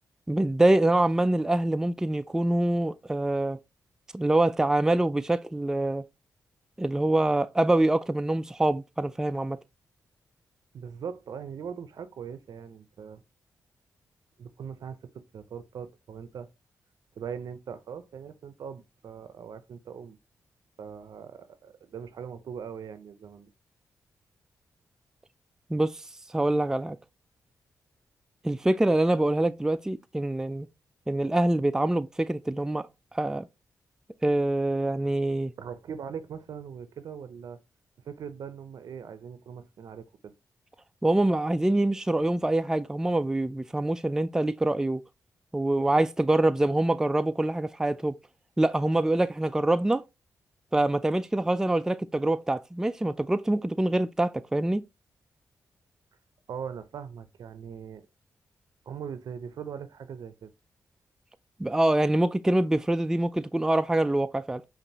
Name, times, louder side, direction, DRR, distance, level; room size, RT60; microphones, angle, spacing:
voice 1, 0.3-3.6 4.1-6.0 6.8-9.6 25.7-26.0 26.3-27.0 28.4-30.7 31.1-32.9 33.1-33.5 34.2-35.5 41.0-45.0 45.5-48.2 48.6-50.0 50.7-54.8 61.6-64.6, right 1 dB, 10° right, 0.3 m, -25 dB
voice 2, 10.7-13.2 14.4-15.0 15.3-16.5 17.2-20.2 20.8-23.5 35.6-37.6 38.0-40.3 56.5-58.1 58.9-60.5, right 7 dB, 70° right, 0.6 m, -40 dB
5.3 x 2.6 x 2.8 m
supercardioid pair, 50°, 7 cm